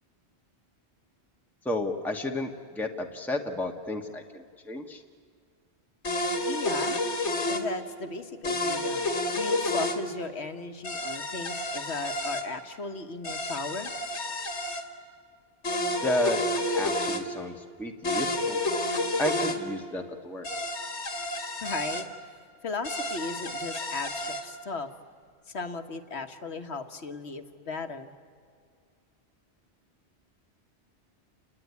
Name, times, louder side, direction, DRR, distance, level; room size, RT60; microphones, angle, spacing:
voice 1, 1.6-5.0 16.0-16.4 16.7-18.6 19.2-20.5, left 1 dB, ahead, 2 dB, 1.3 m, -32 dB
sound 1, 6.0-7.6 8.4-10.0 10.8-12.4 13.2-14.8 15.6-17.2 18.0-19.6 20.4-22.0 22.8-24.4, left 1 dB, 90° left, 2.2 m, -30 dB
voice 2, 6.5-7.0 7.4-13.9 21.6-22.1 22.6-24.9 25.5-28.1, left 3 dB, 70° left, 8 dB, 1.6 m, -36 dB
29.5 x 20.0 x 9.5 m, 2.2 s
omnidirectional pair, 1.1 m